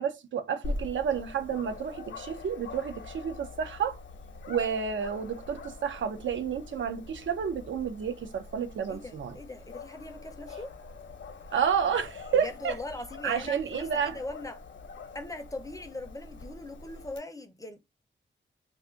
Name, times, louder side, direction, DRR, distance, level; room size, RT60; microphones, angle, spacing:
voice 1, 0.0-4.0 4.5-9.4 11.5-12.8 13.2-14.2, right 7 dB, 80° right, 0.5 m, -30 dB
Dog, 0.6-17.2, left 3 dB, 70° left, 0.7 m, -44 dB
voice 2, 8.9-10.7 12.3-14.6 15.1-17.8, left 2 dB, 15° left, 0.4 m, -40 dB
2.4 x 2.4 x 3.7 m
wide cardioid pair, 130°, 19 cm